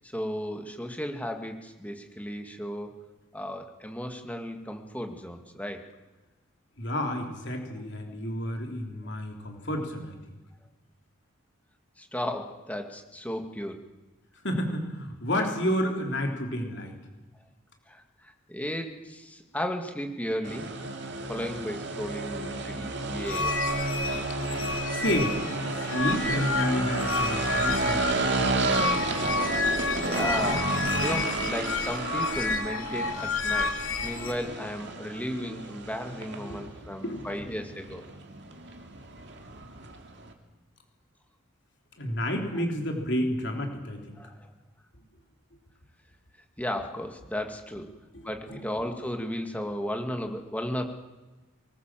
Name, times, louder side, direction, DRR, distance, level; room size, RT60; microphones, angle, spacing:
voice 1, 0.0-2.9 3.3-5.8 12.0-13.8 17.9-20.7 21.3-23.6 30.0-33.7 34.0-38.1 44.2-44.5 46.6-47.9 48.2-50.9, equal, 5° left, 4 dB, 2.1 m, -35 dB
voice 2, 6.8-10.2 14.4-16.9 24.9-25.4 25.7-28.3 36.5-36.7 37.0-37.2 42.0-44.2 48.1-48.6, equal, 55° left, 3 dB, 3.6 m, -30 dB
sound 1, 20.4-40.3, right 2 dB, 55° right, 2.6 m, -32 dB
sound 2, 23.2-34.3, left 4 dB, 85° left, 2.6 m, -30 dB
23.5 x 20.0 x 7.6 m, 1.1 s
head